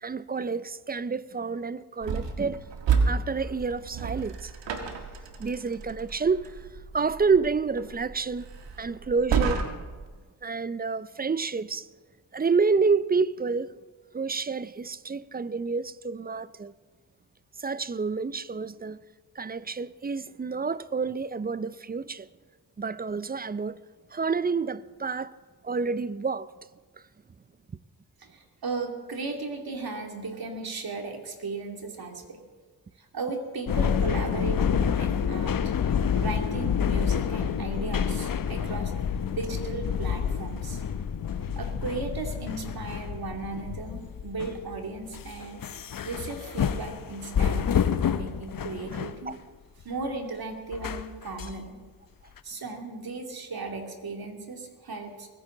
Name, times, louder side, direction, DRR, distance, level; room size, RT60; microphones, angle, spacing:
voice 1, 0.0-2.6 3.1-4.5 5.4-6.5 6.9-8.5 8.8-9.7 10.4-11.9 12.3-13.7 14.1-16.7 17.6-19.0 19.4-22.3 22.8-23.8 24.1-25.3 25.6-26.5 49.3-49.4, right 4 dB, 20° right, 0.5 m, -28 dB
sound 1, 2.0-10.1, right 5 dB, 80° right, 1.6 m, -31 dB
voice 2, 28.2-32.4 33.0-35.7 36.1-38.9 39.3-40.8 41.6-45.7 46.0-49.3 49.8-51.8 52.4-55.3, right 3 dB, 55° right, 2.7 m, -36 dB
sound 2, 33.7-49.3 49.8-50.1 50.7-51.5 52.4-52.5, left 7 dB, 50° left, 0.9 m, -28 dB
21.0 x 9.9 x 3.9 m
supercardioid pair, 45°, 43 cm